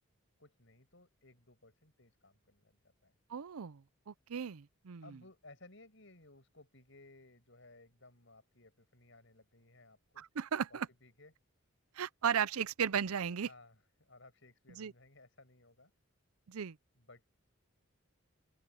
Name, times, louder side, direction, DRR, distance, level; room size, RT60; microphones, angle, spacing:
voice 1, 0.4-3.1 5.0-10.2 10.7-11.3 13.4-15.9 17.0-17.3, left 2 dB, 60° left, 7.0 m, -60 dB
voice 2, 3.3-5.2 10.2-10.9 12.0-13.5 14.8-14.9 16.5-16.8, right 7 dB, 90° right, 0.5 m, -36 dB
open air
head